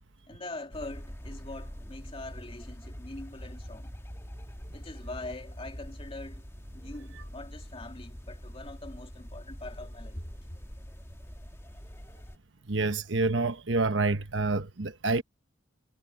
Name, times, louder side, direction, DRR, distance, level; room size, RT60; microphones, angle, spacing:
voice 1, 0.3-3.9 4.7-6.4 6.7-10.3, left 2 dB, 30° left, 2.8 m, -43 dB
sound 1, 0.7-12.4, equal, 15° left, 1.6 m, -44 dB
voice 2, 12.7-15.2, right 3 dB, 65° right, 1.2 m, -27 dB
head